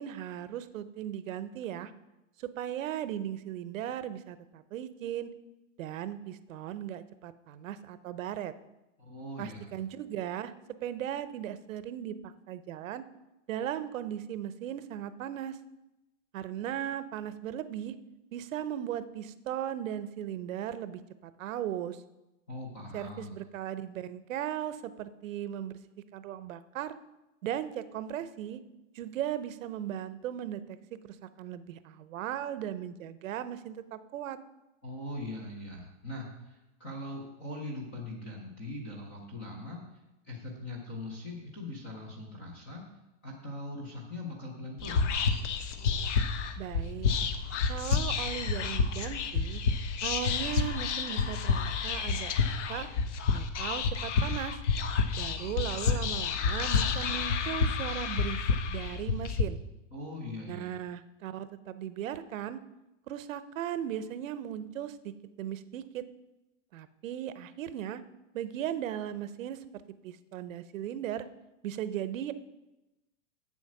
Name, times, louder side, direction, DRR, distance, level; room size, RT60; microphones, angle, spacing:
voice 1, 0.0-1.9 2.4-5.3 5.8-8.5 9.4-10.5 10.8-12.2 12.5-13.0 13.5-15.6 16.3-18.0 18.3-22.0 22.9-25.8 26.1-27.0 27.4-28.6 28.9-30.8 31.0-34.4 46.6-47.1 47.7-49.6 50.0-52.9 53.3-54.6 55.2-58.4 58.7-59.6 60.5-62.6 63.1-65.1 65.4-66.0 66.7-68.0 68.3-69.6 70.0-71.3 71.6-72.3, right 10 dB, 80° right, 13 dB, 0.8 m, -37 dB
voice 2, 9.0-9.7 22.5-23.4 34.8-39.8 40.2-42.9 43.2-45.1 59.9-60.7, left 1 dB, 10° left, -1 dB, 0.3 m, -41 dB
Whispering, 44.8-59.4, left 5 dB, 65° left, 1.0 m, -29 dB
8.3 x 7.3 x 5.9 m, 0.98 s
supercardioid pair, 175°, 39 cm